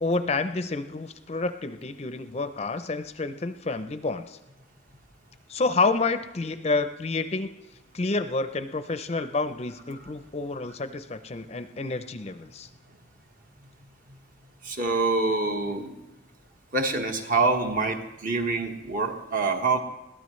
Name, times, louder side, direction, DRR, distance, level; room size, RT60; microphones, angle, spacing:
voice 1, 0.0-4.4 5.5-7.5 7.9-12.7, left 3 dB, 35° left, 10 dB, 0.5 m, -29 dB
voice 2, 14.6-16.0 16.7-19.8, right 3 dB, 50° right, 3 dB, 1.4 m, -26 dB
21.5 x 14.5 x 3.2 m, 1.0 s
head